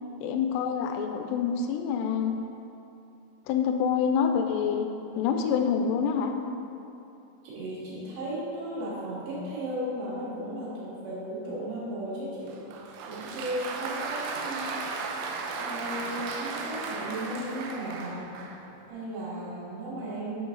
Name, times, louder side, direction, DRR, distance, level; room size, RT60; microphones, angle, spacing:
voice 1, 0.2-2.3 3.5-4.9 5.2-6.3, left 7 dB, 85° left, 5 dB, 2.4 m, -26 dB
voice 2, 7.4-12.6 13.1-14.9 15.4-18.3 18.9-20.5, right 1 dB, 65° right, -9 dB, 4.2 m, -35 dB
Applause, 12.5-18.7, right 4 dB, 85° right, 3.1 m, -35 dB
10.5 x 6.5 x 3.9 m, 2.9 s
omnidirectional pair, 5.4 m